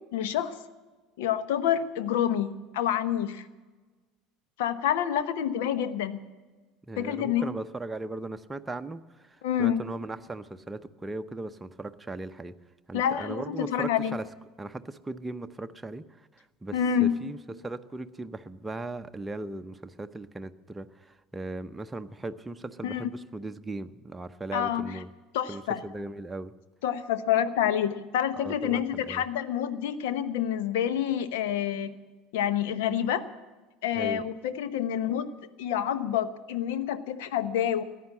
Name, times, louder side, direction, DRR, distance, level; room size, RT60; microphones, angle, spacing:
voice 1, 0.1-0.5 1.2-3.5 4.6-6.2 7.0-7.5 9.4-9.8 12.9-14.2 16.7-17.2 22.8-23.1 24.5-24.9 25.3-25.8 26.8-31.9 32.3-33.2 33.8-35.3 35.6-37.8, left 9 dB, 65° left, 13 dB, 0.9 m, -28 dB
voice 2, 6.9-12.6 12.9-14.3 14.6-25.1 25.5-26.5 28.4-29.2 33.9-34.2, right 2 dB, 15° right, 8 dB, 0.7 m, -38 dB
15.0 x 10.0 x 9.6 m, 1.3 s
figure-of-eight pair, 70°, 0 cm